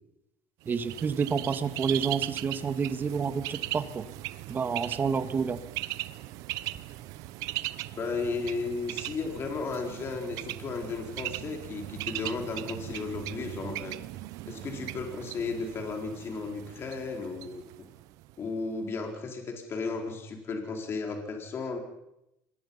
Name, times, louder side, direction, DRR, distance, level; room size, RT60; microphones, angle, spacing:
voice 1, 0.7-4.1 4.5-5.6, right 6 dB, 35° right, 10 dB, 1.8 m, -29 dB
Bird, 0.7-18.4, right 17 dB, 75° right, 0.9 m, -39 dB
voice 2, 7.9-14.0 14.5-17.6 18.4-21.8, left 4 dB, 40° left, 3 dB, 4.4 m, -34 dB
26.5 x 21.5 x 5.6 m, 0.84 s
cardioid pair, 105°, 6 cm